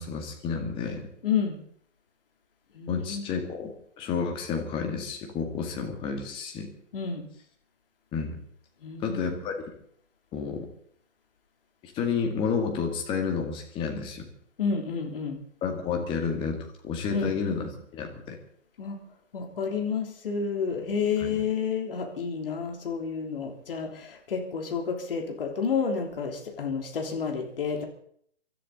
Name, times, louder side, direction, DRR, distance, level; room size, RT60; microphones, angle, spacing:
voice 1, 0.0-1.1 2.9-3.7 4.0-6.7 8.1-8.3 9.0-9.5 10.3-10.7 11.8-14.3 15.6-18.4 21.2-21.4, left 5 dB, 15° left, 3 dB, 2.1 m, -30 dB
voice 2, 1.2-1.6 2.7-3.3 6.9-7.3 8.8-9.6 14.6-15.4 17.1-17.3 18.8-19.0 19.3-27.9, left 6 dB, 45° left, 2 dB, 3.3 m, -30 dB
24.5 x 13.5 x 4.0 m, 0.65 s
figure-of-eight pair, 130°, 37 cm